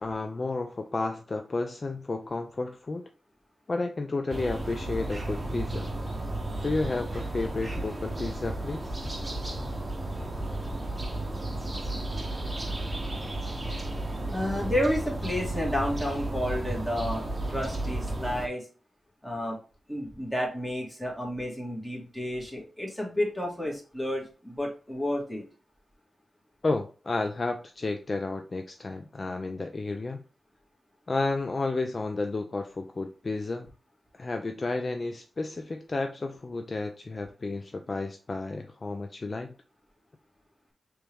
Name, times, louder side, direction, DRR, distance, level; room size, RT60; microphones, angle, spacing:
voice 1, 0.0-3.1 3.7-5.9 6.6-8.9 26.6-30.2 31.1-33.7 34.1-39.5, left 3 dB, 45° left, 6 dB, 0.4 m, -32 dB
sound 1, 4.3-18.5, right 1 dB, 25° right, 0.8 m, -33 dB
voice 2, 14.3-18.7 19.2-19.6 19.9-25.4, left 1 dB, 10° left, -2 dB, 1.8 m, -31 dB
3.4 x 3.1 x 3.4 m, 0.37 s
cardioid pair, 65°, 0 cm